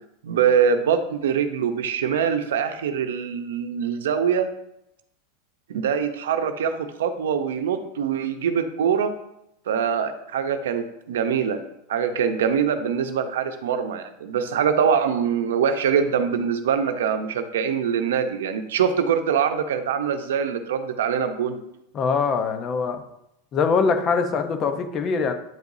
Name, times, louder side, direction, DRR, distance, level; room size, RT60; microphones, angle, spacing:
voice 1, 0.2-4.5 5.7-9.1 9.7-11.6 11.9-21.6, right 7 dB, 90° right, 8 dB, 0.7 m, -23 dB
voice 2, 21.9-23.0 23.5-25.3, left 5 dB, 30° left, 8 dB, 0.8 m, -23 dB
9.3 x 4.9 x 2.7 m, 0.82 s
supercardioid pair, 135°, 0 cm